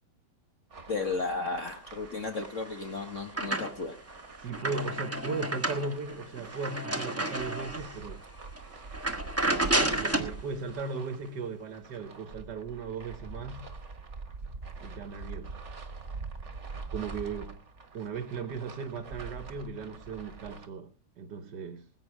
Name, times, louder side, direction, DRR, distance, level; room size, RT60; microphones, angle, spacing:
sound 1, 0.7-20.7, right 4 dB, 40° right, 1.7 m, -45 dB
voice 1, 0.9-4.0, left 3 dB, 45° left, 1.5 m, -34 dB
sound 2, 2.4-4.0 4.4-8.0 8.4-8.6 8.9-10.4, right 1 dB, 10° right, 1.3 m, -31 dB
voice 2, 4.4-8.2 9.9-13.7 14.8-15.6 16.9-17.6 17.9-20.9 21.2-21.9, right 4 dB, 65° right, 1.8 m, -37 dB
20.0 x 8.9 x 4.9 m
omnidirectional pair, 2.0 m